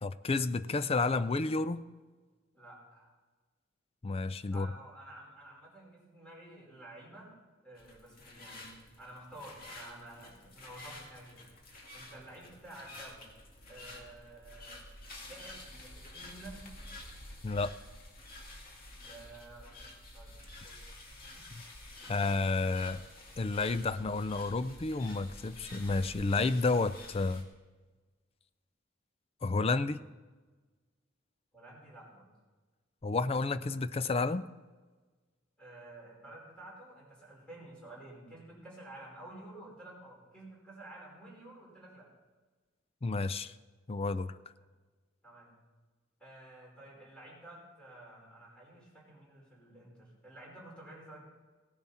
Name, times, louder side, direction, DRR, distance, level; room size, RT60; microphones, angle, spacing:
voice 1, 0.0-1.8 4.0-4.7 17.4-17.7 22.1-23.0 23.4-27.5 29.4-30.0 33.0-34.4 43.0-43.5 43.9-44.4, left 3 dB, 30° left, 14 dB, 0.4 m, -31 dB
voice 2, 2.5-3.1 4.5-7.3 7.6-11.5 11.9-13.3 13.7-14.9 15.2-16.7 18.9-20.4 20.6-21.4 31.5-32.3 35.6-42.1 45.2-45.6 46.2-51.2, right 1 dB, 5° left, -4 dB, 5.0 m, -51 dB
sound 1, 7.7-27.4, left 1 dB, 50° left, 2.3 m, -50 dB
17.5 x 10.5 x 4.3 m, 1.3 s
head